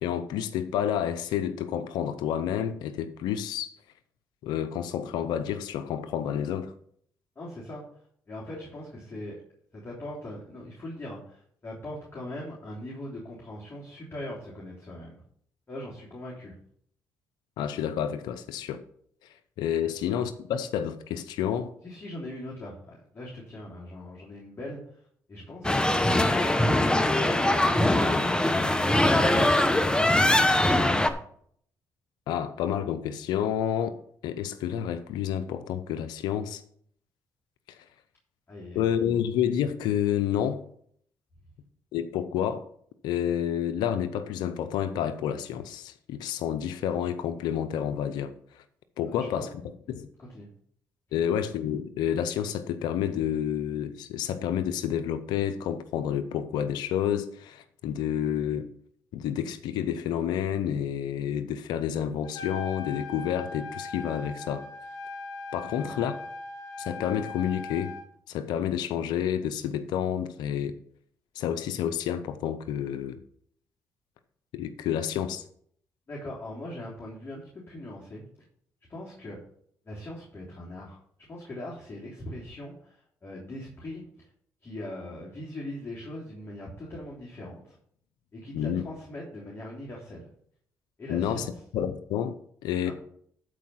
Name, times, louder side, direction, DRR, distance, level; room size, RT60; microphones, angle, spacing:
voice 1, 0.0-3.7 4.4-6.7 17.6-18.8 19.6-21.7 32.3-34.0 34.2-36.6 37.7-37.8 38.7-40.6 41.9-42.6 43.0-48.3 49.0-49.5 49.9-50.1 51.1-58.7 59.1-64.6 65.5-66.1 66.8-67.9 68.3-70.8 71.4-73.2 74.5-75.4 88.5-88.8 91.1-91.4 91.7-92.3 92.6-92.9, left 9 dB, 85° left, 0.6 m, -29 dB
voice 2, 7.4-9.4 9.7-15.2 15.7-16.6 19.8-19.9 21.8-29.9 38.5-39.0 49.1-49.5 49.9-50.0 50.2-50.5 51.1-51.3 65.8-66.0 76.1-78.2 78.9-79.4 79.8-81.0 81.3-84.3 84.6-87.8 88.3-90.3 91.0-91.6 92.8-92.9, left 1 dB, 35° left, 3.5 m, -41 dB
sound 1, 25.6-31.1, left 1 dB, 10° left, 1.0 m, -22 dB
Trumpet, 62.2-68.0, left 3 dB, 60° left, 4.0 m, -39 dB
12.0 x 4.8 x 5.7 m
supercardioid pair, 70°, 7 cm